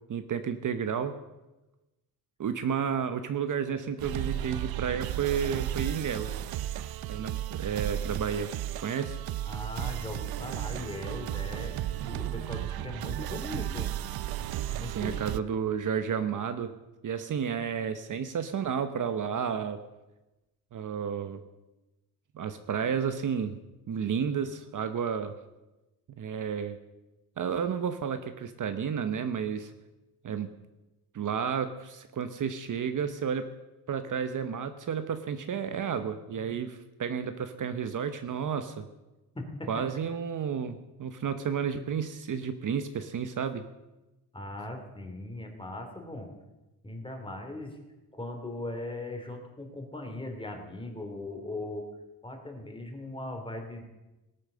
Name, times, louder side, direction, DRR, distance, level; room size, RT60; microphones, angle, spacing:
voice 1, 0.1-1.2 2.4-6.4 7.1-8.5 8.8-9.2 14.9-16.7 17.0-19.8 20.7-21.4 22.3-23.6 23.9-25.3 26.2-26.8 27.4-29.7 30.2-30.5 31.1-33.5 33.9-38.9 39.7-43.6, right 7 dB, 50° right, 10 dB, 0.9 m, -31 dB
sound 1, 4.0-15.4, right 12 dB, 65° right, 0.6 m, -34 dB
voice 2, 9.5-13.9 14.7-15.4 39.3-39.8 44.3-46.3 46.8-47.8 48.1-51.9 52.2-53.8, left 2 dB, 15° left, 4 dB, 2.8 m, -39 dB
18.5 x 8.6 x 6.7 m, 1.0 s
cardioid pair, 120°, 40 cm